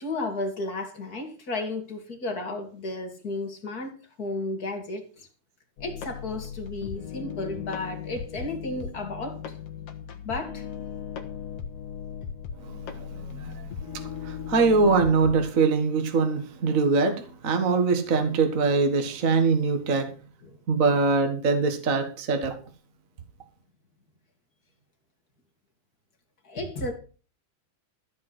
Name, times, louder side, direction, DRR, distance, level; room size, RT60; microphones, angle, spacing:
voice 1, 0.0-3.9 4.2-5.0 5.8-9.3 10.3-10.6 26.5-26.9, left 2 dB, 35° left, 2.5 m, -33 dB
sound 1, 5.8-15.5, left 7 dB, 60° left, 2.2 m, -37 dB
voice 2, 14.2-17.1 17.4-20.1 20.7-22.5, right 4 dB, 40° right, 1.4 m, -22 dB
14.0 x 5.4 x 7.8 m
omnidirectional pair, 3.4 m